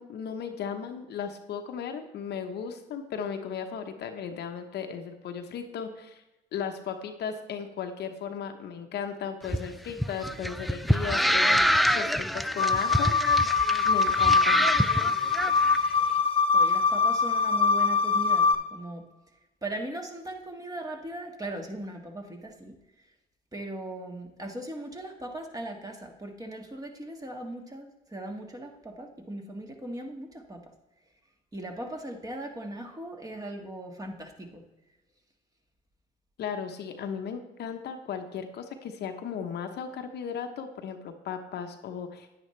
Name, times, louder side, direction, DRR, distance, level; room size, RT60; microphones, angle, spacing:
voice 1, 0.0-6.2 6.5-13.1 13.8-14.7 36.4-42.3, left 7 dB, 65° left, 6 dB, 1.0 m, -36 dB
sound 1, 9.4-15.8, equal, ahead, 0.3 m, -26 dB
sound 2, 12.6-18.5, left 5 dB, 30° left, 1.3 m, -23 dB
voice 2, 16.5-19.0 19.6-22.8 23.5-30.6 31.5-34.6, right 1 dB, 20° right, 2 dB, 1.7 m, -39 dB
9.7 x 9.7 x 3.3 m, 1.0 s
supercardioid pair, 75°, 19 cm